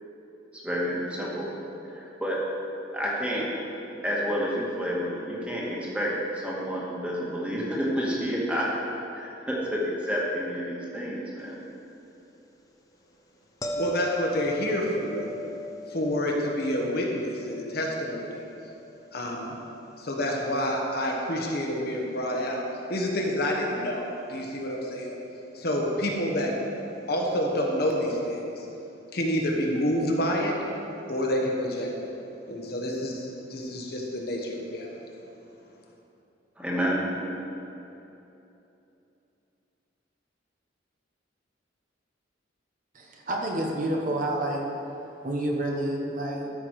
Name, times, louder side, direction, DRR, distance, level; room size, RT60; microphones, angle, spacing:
voice 1, 0.6-1.5 1.9-2.4 2.9-3.5 4.0-8.6 9.1-11.6 36.6-37.3, equal, 5° right, -5 dB, 1.7 m, -29 dB
sound 1, 13.6-20.6 25.9-26.0, left 1 dB, 20° left, 0.8 m, -40 dB
voice 2, 13.8-15.3 15.9-18.4 19.1-19.5 20.0-22.6 22.9-25.2 25.5-26.5 27.1-28.7 29.1-30.5 31.1-32.1 32.5-34.9, equal, 55° left, -1 dB, 1.3 m, -28 dB
voice 3, 42.9-46.5, right 1 dB, 45° right, 0 dB, 1.1 m, -29 dB
13.0 x 6.0 x 4.8 m, 2.9 s
head